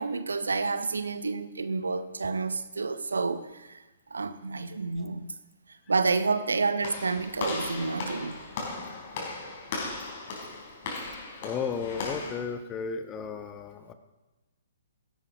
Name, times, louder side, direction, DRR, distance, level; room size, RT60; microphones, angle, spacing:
voice 1, 0.0-3.8 4.1-5.3 5.9-8.4, right 4 dB, 80° right, 0.8 m, -29 dB
Walk footsteps / Slam, 6.8-12.4, left 3 dB, 50° left, 4.4 m, -37 dB
voice 2, 11.4-13.9, left 6 dB, 20° left, 1.2 m, -34 dB
13.5 x 11.5 x 5.2 m
figure-of-eight pair, 125°, 0 cm